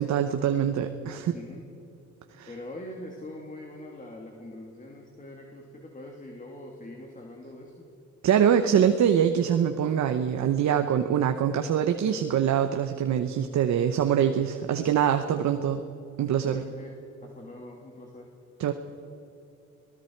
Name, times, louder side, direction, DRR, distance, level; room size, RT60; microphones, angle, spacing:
voice 1, 0.0-1.4 2.4-2.5 8.2-15.8 16.2-16.6 18.6-18.7, right 9 dB, 65° right, 6 dB, 1.1 m, -24 dB
voice 2, 1.3-1.6 2.5-7.9 16.4-16.9 17.2-18.3, left 1 dB, 25° left, 0 dB, 2.7 m, -43 dB
30.0 x 19.5 x 4.7 m, 2.7 s
cardioid pair, 90°, 30 cm